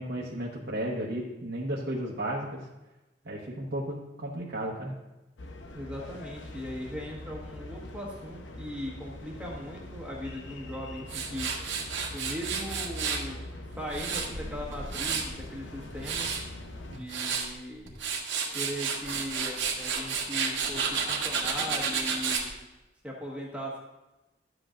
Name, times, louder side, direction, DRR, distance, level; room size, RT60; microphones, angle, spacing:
voice 1, 0.0-2.6 3.2-4.9, right 1 dB, 65° right, -4 dB, 1.2 m, -34 dB
sound 1, 5.4-17.0, left 1 dB, 85° left, 0.9 m, -43 dB
voice 2, 5.7-11.6 12.1-13.4 13.8-16.3 16.9-18.0 18.5-22.5 23.0-23.8, equal, 5° right, -3 dB, 1.5 m, -39 dB
Tools, 11.1-13.2 13.7-15.4 15.8-16.4 16.9-17.5 17.9-22.5, right 6 dB, 85° right, 1.5 m, -31 dB
12.0 x 8.0 x 2.5 m, 1.0 s
head